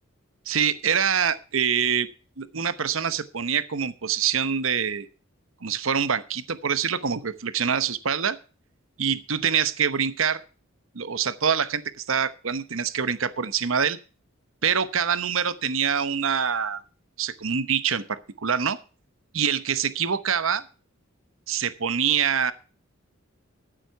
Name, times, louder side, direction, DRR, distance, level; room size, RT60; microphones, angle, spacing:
voice 1, 0.5-2.1 2.4-5.1 5.6-8.4 9.0-10.4 10.9-14.0 14.6-16.8 17.2-18.8 19.3-20.6 21.5-22.5, right 7 dB, 70° right, 13 dB, 0.9 m, -25 dB
14.0 x 7.6 x 5.7 m, 0.36 s
head